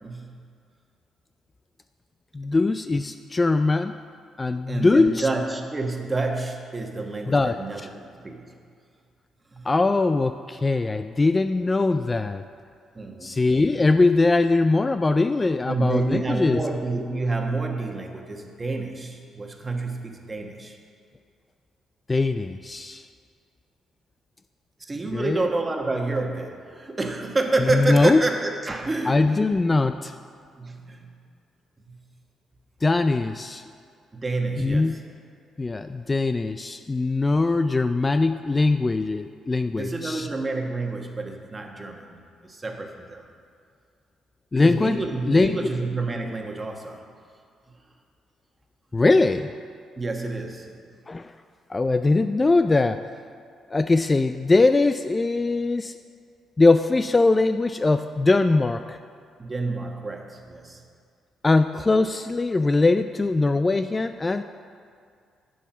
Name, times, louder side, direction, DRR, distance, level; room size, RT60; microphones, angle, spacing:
voice 1, 0.0-0.4 4.7-8.5 9.5-9.7 12.9-13.4 15.7-20.8 24.8-29.5 30.6-31.1 31.9-32.0 34.1-34.9 39.8-43.2 44.6-47.0 50.0-50.8 59.4-60.8, right 3 dB, 25° right, 2 dB, 1.3 m, -29 dB
voice 2, 2.3-3.9 4.4-5.3 7.3-7.6 9.6-12.4 13.2-16.6 22.1-23.1 25.1-25.5 27.6-28.2 29.1-30.1 32.8-33.6 34.6-35.0 35.6-40.3 44.5-45.0 45.2-45.6 48.9-49.5 51.1-51.3 51.7-53.1 53.7-55.9 56.6-59.0 61.4-64.4, left 3 dB, 25° left, 9 dB, 0.3 m, -21 dB
10.0 x 7.2 x 6.0 m, 2.2 s
cardioid pair, 90°, 0 cm